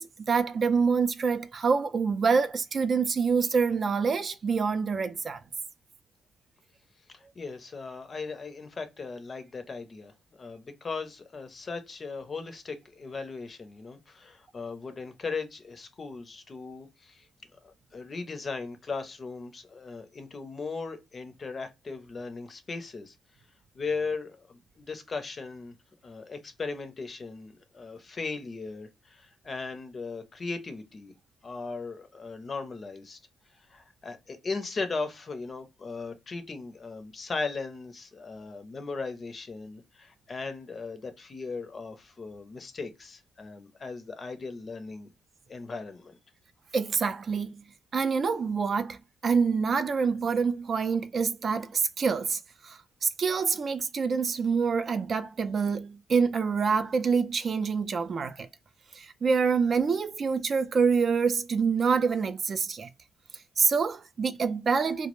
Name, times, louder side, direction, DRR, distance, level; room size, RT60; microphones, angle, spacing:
voice 1, 0.0-5.4 46.7-47.6 47.9-58.5 58.9-62.9 63.6-65.1, right 5 dB, 45° right, 0.3 m, -26 dB
voice 2, 7.1-17.3 17.6-23.1 23.7-25.8 26.0-31.1 31.4-33.2 33.7-45.1 45.5-46.2, left 4 dB, 35° left, 0.5 m, -38 dB
2.2 x 2.0 x 3.0 m
cardioid pair, 90°, 0 cm